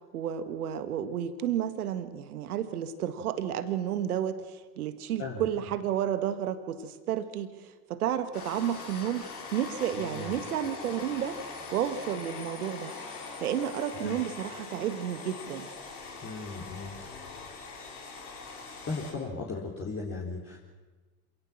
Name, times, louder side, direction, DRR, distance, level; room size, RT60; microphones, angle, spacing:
voice 1, 0.1-11.4 11.7-12.9 13.4-15.7, right 10 dB, 75° right, 12 dB, 1.7 m, -31 dB
sound 1, 8.3-19.1, left 4 dB, 80° left, 4.3 m, -42 dB
voice 2, 9.9-10.4 13.9-14.2 16.2-17.1 18.8-20.6, left 3 dB, 30° left, -3 dB, 4.0 m, -37 dB
27.0 x 17.5 x 7.6 m, 1.3 s
hypercardioid pair, 65°, 44 cm